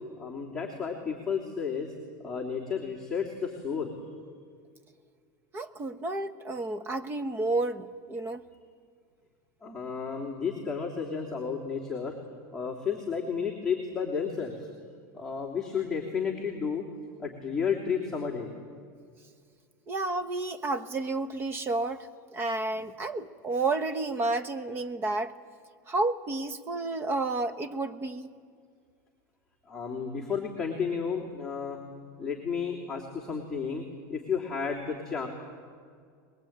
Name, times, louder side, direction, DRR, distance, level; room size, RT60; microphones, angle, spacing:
voice 1, 0.2-1.9 2.2-3.9 9.6-12.2 12.5-14.7 15.1-16.8 17.2-18.5 29.7-31.8 32.2-35.3, left 6 dB, ahead, -6 dB, 3.2 m, -32 dB
voice 2, 5.5-8.4 19.9-22.1 22.3-25.3 25.9-28.3, right 2 dB, 20° right, 9 dB, 1.1 m, -31 dB
23.0 x 22.0 x 8.9 m, 2.1 s
supercardioid pair, 145°, 10 cm